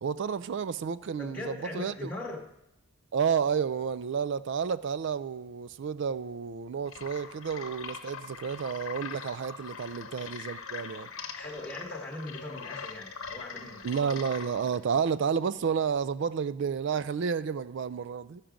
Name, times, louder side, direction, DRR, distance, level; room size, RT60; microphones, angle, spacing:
voice 1, 0.0-2.1 3.1-11.1 13.8-18.4, right 6 dB, 55° right, 0.3 m, -31 dB
voice 2, 1.2-2.5 11.4-13.9, left 1 dB, 10° left, 1.1 m, -40 dB
sound 1, 6.9-14.8, left 6 dB, 65° left, 0.9 m, -42 dB
14.0 x 5.9 x 5.1 m
head